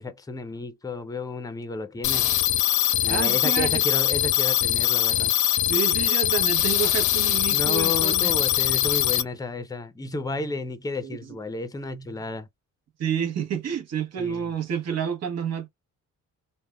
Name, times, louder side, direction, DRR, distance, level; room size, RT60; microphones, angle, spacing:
voice 1, 0.0-2.4 3.0-5.3 7.5-12.5 14.2-14.5, left 2 dB, 10° left, 0.5 m, -32 dB
sound 1, 2.0-9.2, left 12 dB, 75° left, 0.6 m, -22 dB
voice 2, 3.1-3.8 5.7-8.3 11.0-11.4 13.0-15.7, right 8 dB, 55° right, 0.9 m, -29 dB
3.5 x 2.1 x 2.2 m
cardioid pair, 90°, 30 cm